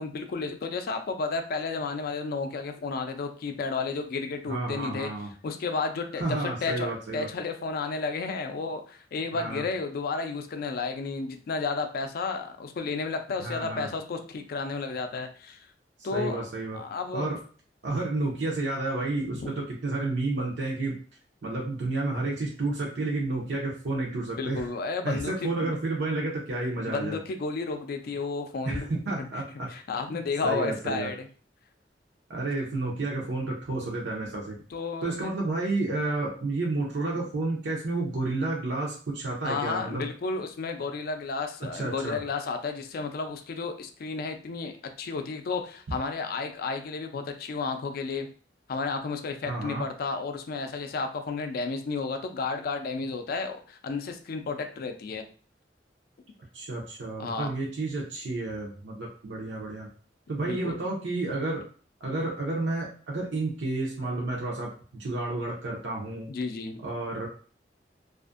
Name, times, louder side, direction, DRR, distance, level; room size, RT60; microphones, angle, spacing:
voice 1, 0.0-5.1 5.4-15.6 16.0-16.4 16.7-17.3 19.3-19.5 24.4-25.7 26.9-28.9 29.2-29.3 29.7-31.3 34.7-35.3 39.4-44.7 45.0-48.3 48.7-55.2 57.2-57.5 60.5-60.8 66.3-66.8, left 4 dB, 55° left, 6 dB, 0.4 m, -32 dB
voice 2, 4.5-5.3 6.2-7.3 9.3-9.6 13.4-13.9 16.1-16.8 17.1-17.4 17.8-21.0 21.4-24.7 25.0-27.2 28.7-29.7 30.1-31.1 32.3-34.6 35.0-40.0 41.6-42.2 49.4-49.9 56.5-59.9 60.3-61.6 62.0-66.3 66.8-67.3, right 2 dB, 85° right, -3 dB, 0.6 m, -31 dB
2.5 x 2.4 x 2.4 m, 0.41 s
head